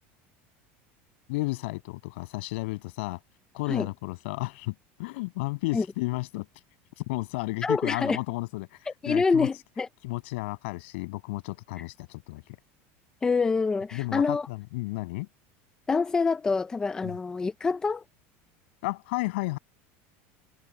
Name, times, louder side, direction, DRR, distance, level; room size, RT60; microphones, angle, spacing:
voice 1, 1.3-3.2 3.5-4.7 5.0-6.5 7.0-8.7 9.0-9.5 10.0-12.6 13.9-15.3 17.0-17.1 18.8-19.6, left 23 dB, 75° left, 7.3 m, -32 dB
voice 2, 7.6-8.2 8.9-9.9 13.2-14.5 15.9-18.0, left 4 dB, 10° left, 0.6 m, -26 dB
cardioid pair, 175°, 7 cm